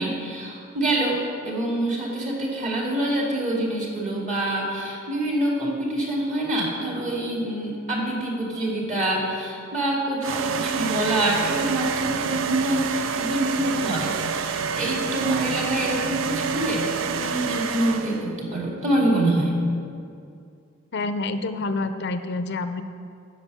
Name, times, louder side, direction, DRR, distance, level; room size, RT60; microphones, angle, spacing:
voice 1, 0.0-19.6, right 1 dB, 40° right, -2 dB, 2.4 m, -26 dB
sound 1, 10.2-18.3, right 6 dB, 70° right, 0.5 m, -28 dB
voice 2, 20.9-22.8, left 3 dB, 55° left, 10 dB, 0.5 m, -27 dB
9.8 x 6.6 x 8.1 m, 2.4 s
head